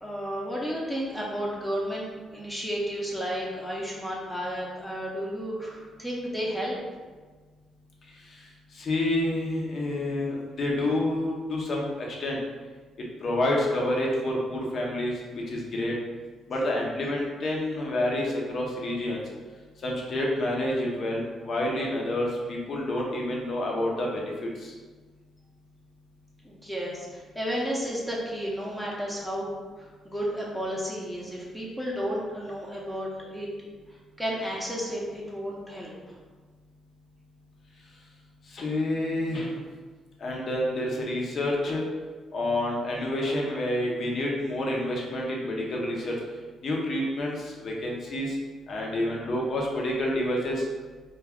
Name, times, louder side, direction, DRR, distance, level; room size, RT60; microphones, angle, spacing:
voice 1, 0.0-6.7 26.4-33.5 34.2-36.1, equal, 5° left, -4 dB, 0.6 m, -32 dB
voice 2, 8.7-11.9 12.2-12.4 13.2-15.9 16.5-19.2 19.8-24.7 38.5-39.6 40.2-41.8 42.3-46.1 46.6-48.4 48.7-50.7, left 1 dB, 55° left, -2 dB, 0.6 m, -28 dB
2.3 x 2.2 x 3.5 m, 1.4 s
cardioid pair, 90°, 0 cm